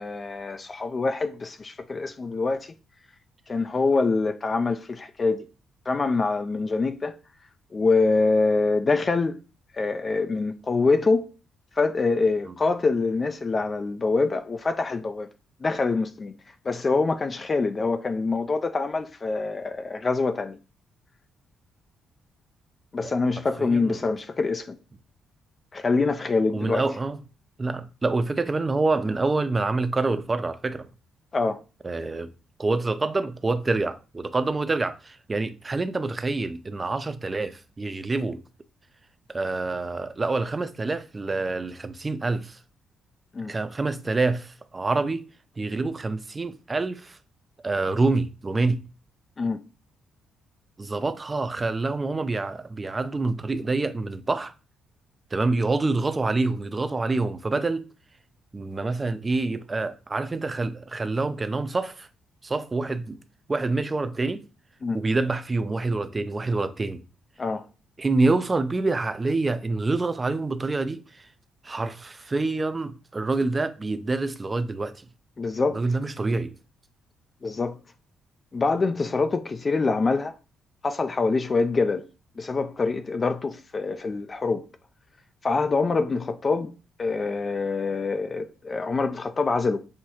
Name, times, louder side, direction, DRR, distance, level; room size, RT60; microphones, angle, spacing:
voice 1, 0.0-2.7 3.5-5.5 5.9-7.2 7.7-9.3 9.7-11.3 11.8-15.3 15.6-16.3 16.7-20.6 22.9-24.8 25.7-26.8 31.3-31.6 43.3-43.5 49.4-49.6 64.8-65.0 67.4-67.6 75.4-75.8 77.4-77.8 78.5-80.3 80.8-82.1 82.4-84.6 85.4-86.7 87.0-89.8, left 3 dB, 35° left, 0.4 m, -25 dB
voice 2, 23.6-24.0 26.5-27.2 27.6-30.9 31.8-32.3 32.6-38.4 39.3-42.6 43.5-45.2 45.6-47.2 47.6-48.8 50.8-54.5 55.3-57.8 58.5-62.1 62.4-63.2 63.5-64.4 64.9-67.0 68.0-71.3 71.6-75.0 75.7-76.5, right 3 dB, 25° right, 0.5 m, -26 dB
6.3 x 2.6 x 2.9 m
cardioid pair, 90°, 0 cm